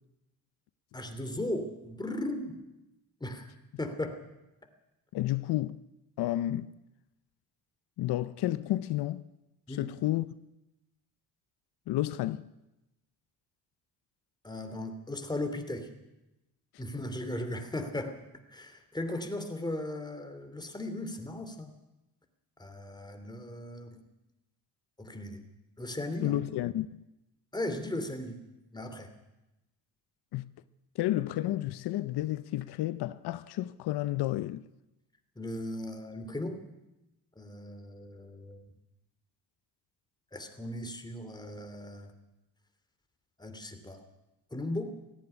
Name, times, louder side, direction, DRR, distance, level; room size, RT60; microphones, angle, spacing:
voice 1, 0.9-2.6 3.2-3.5 3.8-4.2 9.7-9.9 14.4-15.9 16.8-18.2 18.5-21.7 22.6-24.0 25.0-25.4 25.8-26.4 27.5-28.4 28.7-29.1 35.4-36.6 37.4-38.7 40.3-42.1 43.4-44.0 44.5-44.9, left 1 dB, 10° left, 2.8 m, -37 dB
voice 2, 5.1-5.8 6.2-6.7 8.0-9.2 9.7-10.3 11.9-12.4 26.2-27.0 30.3-30.4 30.9-34.6, left 15 dB, 85° left, 0.7 m, -31 dB
17.0 x 15.5 x 10.0 m
cardioid pair, 110°, 38 cm